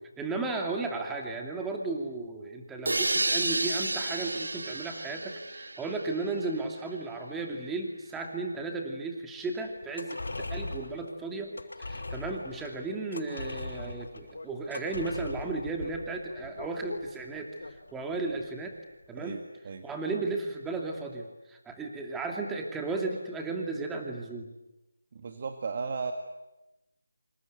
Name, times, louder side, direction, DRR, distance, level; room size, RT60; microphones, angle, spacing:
voice 1, 0.2-10.2 10.5-17.5 17.9-18.8 19.1-19.4 19.8-24.5, right 3 dB, 5° right, 2 dB, 2.6 m, -34 dB
sound 1, 2.8-6.6, right 2 dB, 80° right, 1.1 m, -31 dB
sound 2, 9.8-18.4 18.7-18.8, left 2 dB, 75° left, 6.2 m, -40 dB
voice 2, 19.2-19.9 25.1-26.1, right 5 dB, 40° right, 5 dB, 1.9 m, -35 dB
27.5 x 26.5 x 8.1 m, 0.98 s
figure-of-eight pair, 165°, 0 cm